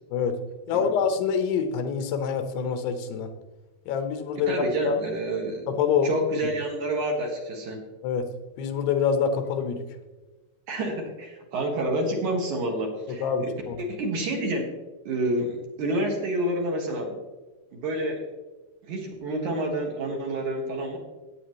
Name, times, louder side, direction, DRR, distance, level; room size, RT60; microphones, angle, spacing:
voice 1, 0.7-3.3 3.9-4.5 4.8-5.0 5.7-6.1 8.0-8.3 8.6-9.8 13.1-13.8, left 6 dB, 85° left, 7 dB, 3.1 m, -26 dB
voice 2, 4.5-5.7 6.0-7.8 10.7-13.5 13.8-14.7 15.1-17.2 17.7-18.3 18.8-21.0, right 1 dB, 60° right, 1 dB, 2.5 m, -28 dB
17.0 x 8.5 x 3.1 m, 1.2 s
omnidirectional pair, 4.6 m